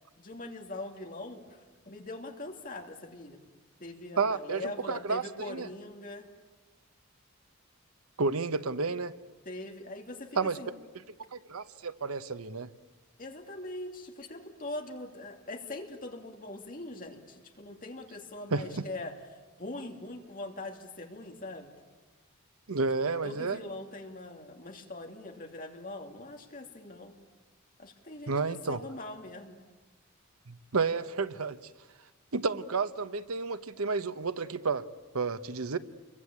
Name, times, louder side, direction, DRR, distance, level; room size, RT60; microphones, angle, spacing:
voice 1, 0.2-3.4 3.8-6.3 9.4-10.7 13.2-19.1 19.6-21.7 23.2-27.1 27.8-29.6, left 2 dB, 40° left, 2 dB, 2.8 m, -42 dB
voice 2, 4.2-5.7 8.2-9.1 10.4-10.6 11.2-12.7 18.5-18.6 22.7-23.6 28.3-28.8 30.5-31.6 32.3-34.8 35.1-35.8, right 4 dB, 90° right, 12 dB, 1.0 m, -31 dB
28.0 x 22.5 x 8.7 m, 1.3 s
head